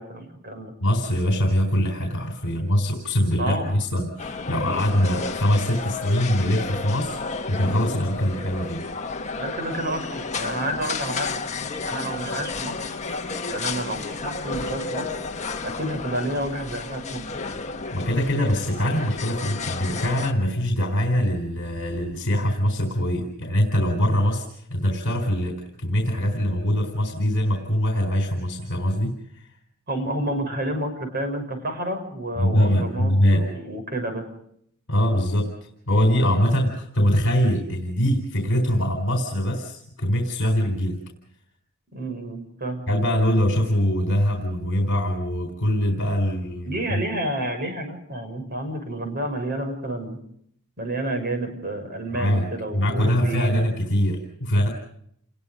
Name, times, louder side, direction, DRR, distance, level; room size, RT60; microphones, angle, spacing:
voice 1, 0.0-0.7 3.4-3.7 9.3-11.3 11.9-12.9 13.5-15.1 15.6-17.2 29.9-34.3 41.9-42.9 46.7-50.2 50.8-53.6, right 1 dB, 45° right, 5 dB, 6.2 m, -30 dB
voice 2, 0.8-7.2 7.5-8.8 17.9-29.5 32.4-33.5 34.9-35.5 35.9-41.0 42.9-47.0 52.1-52.5 52.7-54.7, equal, 55° left, 4 dB, 4.2 m, -23 dB
sound 1, 4.2-20.3, left 4 dB, 30° left, 1.6 m, -32 dB
29.5 x 20.5 x 5.2 m, 0.68 s
head